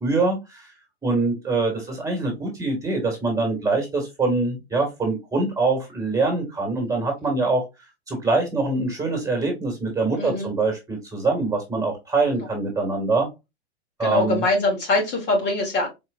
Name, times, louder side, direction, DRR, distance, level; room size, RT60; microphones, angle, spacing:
voice 1, 0.0-0.7 1.0-7.6 8.1-13.3 14.0-14.4, right 3 dB, 10° right, 2 dB, 1.9 m, -24 dB
voice 2, 10.2-10.5 12.3-12.4 14.0-15.9, left 2 dB, 30° left, 1 dB, 1.5 m, -23 dB
4.6 x 2.8 x 2.5 m, 0.22 s
hypercardioid pair, 120°, 33 cm